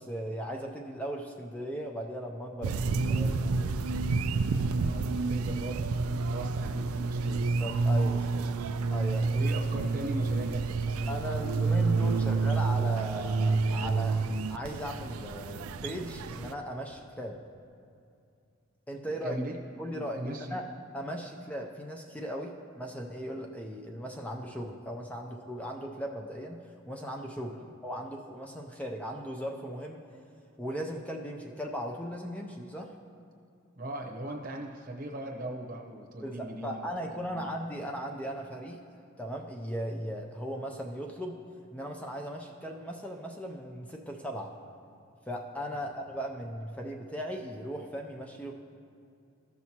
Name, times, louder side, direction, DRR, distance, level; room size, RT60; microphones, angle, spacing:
voice 1, 0.0-3.9 7.4-8.3 8.9-9.3 11.1-17.4 18.9-19.4 19.8-20.7 20.9-26.6 26.9-27.6 27.8-30.0 30.6-32.9 36.2-38.8 39.2-41.4 41.7-44.5 45.3-48.5, equal, 5° left, 1 dB, 0.4 m, -37 dB
sound 1, 2.6-16.5, right 4 dB, 85° right, 0.4 m, -29 dB
voice 2, 4.7-7.5 8.2-8.5 9.2-12.6 19.2-19.6 19.9-20.6 27.6-27.7 33.8-37.6 45.8-45.9, right 1 dB, 40° right, 0 dB, 0.8 m, -39 dB
14.5 x 6.0 x 2.8 m, 2.5 s
head